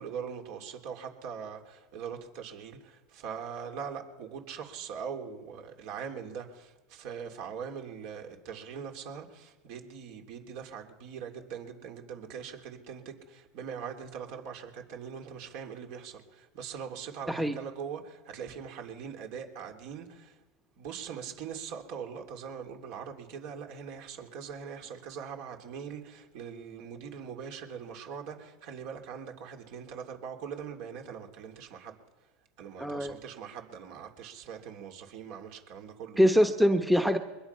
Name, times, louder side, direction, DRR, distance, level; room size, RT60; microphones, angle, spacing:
voice 1, 0.0-20.4 20.8-32.0 32.6-36.2, right 7 dB, 65° right, 3 dB, 3.2 m, -41 dB
voice 2, 32.8-33.2 36.2-37.2, equal, 5° right, 7 dB, 1.2 m, -23 dB
22.5 x 21.0 x 5.8 m, 1.2 s
supercardioid pair, 105°, 0 cm